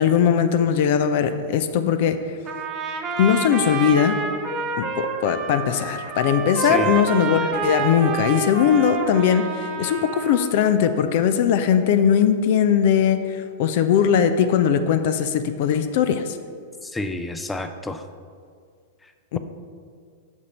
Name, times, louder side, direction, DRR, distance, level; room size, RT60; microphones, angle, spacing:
voice 1, 0.0-2.2 3.2-4.2 4.8-16.4 19.3-19.4, left 8 dB, 55° left, 10 dB, 0.5 m, -20 dB
Trumpet, 2.5-10.5, right 5 dB, 30° right, 0.9 m, -28 dB
voice 2, 6.6-7.0 16.8-18.0, left 1 dB, 10° left, 8 dB, 0.5 m, -29 dB
7.3 x 6.3 x 5.4 m, 2.1 s
figure-of-eight pair, 100°, 0 cm